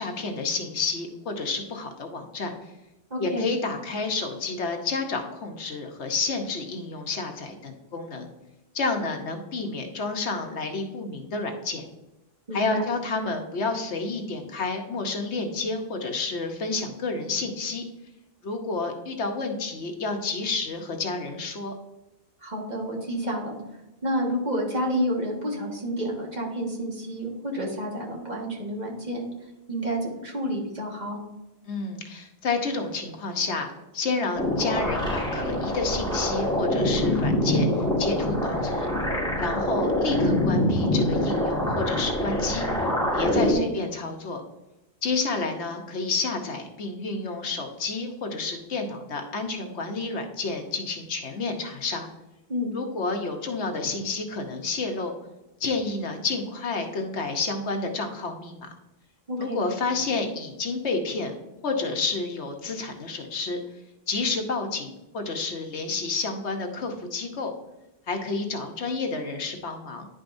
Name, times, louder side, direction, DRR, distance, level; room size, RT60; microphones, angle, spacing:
voice 1, 0.0-2.5 3.2-8.3 8.7-11.8 12.5-17.8 18.4-21.7 31.6-33.7 33.9-38.9 39.4-42.6 43.1-44.4 45.0-52.1 52.7-55.1 55.6-58.7 59.4-61.3 61.6-63.6 64.1-67.5 68.1-70.1, left 3 dB, 65° left, 4 dB, 1.2 m, -30 dB
voice 2, 3.1-3.5 12.5-12.9 22.4-23.6 24.0-29.3 29.7-31.2 43.5-43.7 52.5-52.8 59.3-59.6, equal, 35° right, -2 dB, 1.7 m, -29 dB
sound 1, 34.4-43.5, left 1 dB, 5° left, 1.6 m, -25 dB
10.5 x 5.2 x 2.6 m, 0.97 s
omnidirectional pair, 1.2 m